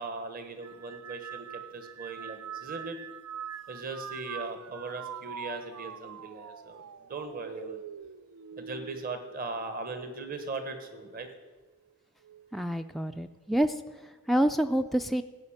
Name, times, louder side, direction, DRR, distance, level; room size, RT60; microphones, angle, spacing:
voice 1, 0.0-3.0 3.7-7.8 8.6-11.3, right 3 dB, 40° right, 7 dB, 1.3 m, -39 dB
sound 1, 0.6-10.2 10.7-11.3 12.2-12.6, right 8 dB, 75° right, 0.4 m, -44 dB
voice 2, 12.5-13.7 14.3-15.2, right 1 dB, ahead, 5 dB, 0.3 m, -27 dB
16.0 x 5.8 x 8.7 m, 1.2 s
head